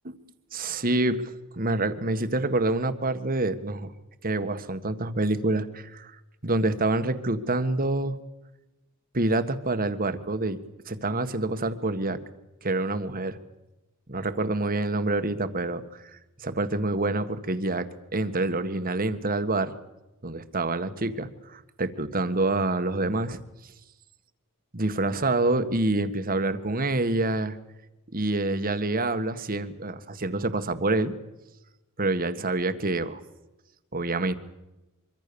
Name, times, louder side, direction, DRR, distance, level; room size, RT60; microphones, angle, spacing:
voice 1, 0.5-3.9 4.2-6.2 6.4-8.2 9.1-10.6 10.9-12.2 12.6-13.4 14.1-16.0 16.4-19.7 20.2-23.4 24.7-27.6 28.1-31.1 32.0-33.2 33.9-34.3, right 2 dB, 40° right, 10 dB, 1.7 m, -27 dB
24.5 x 24.5 x 7.0 m, 0.98 s
head